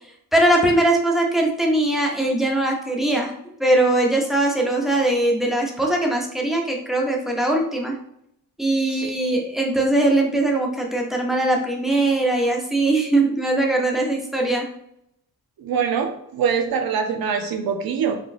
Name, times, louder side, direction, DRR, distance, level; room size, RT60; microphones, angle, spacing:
voice 1, 0.3-3.3 3.6-8.0 8.6-14.7, right 1 dB, ahead, 0 dB, 0.7 m, -21 dB
voice 2, 15.6-18.2, right 6 dB, 70° right, 5 dB, 0.7 m, -24 dB
4.0 x 2.4 x 2.5 m, 0.75 s
cardioid pair, 85°, 37 cm